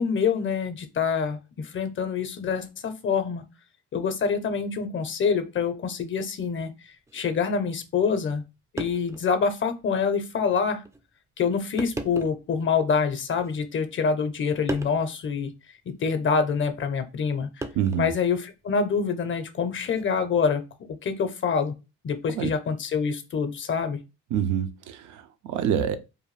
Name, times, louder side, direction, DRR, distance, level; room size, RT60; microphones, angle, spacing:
voice 1, 0.0-3.4 3.9-8.4 8.7-10.8 11.4-15.5 15.9-17.5 18.0-20.6 21.0-21.7 22.0-24.0, left 6 dB, 40° left, 0.5 m, -26 dB
sound 1, 7.1-7.2 8.3-8.4 8.8-9.3 9.8-9.9 10.8-11.0 11.8-12.5 13.3-14.0 14.7-15.0 16.6-16.8 17.6-18.2 19.8-20.1, right 2 dB, 10° right, 0.3 m, -36 dB
voice 2, 17.8-18.1 22.3-22.5 24.3-26.0, right 9 dB, 75° right, 0.5 m, -26 dB
2.6 x 2.2 x 3.1 m
cardioid pair, 90°, 30 cm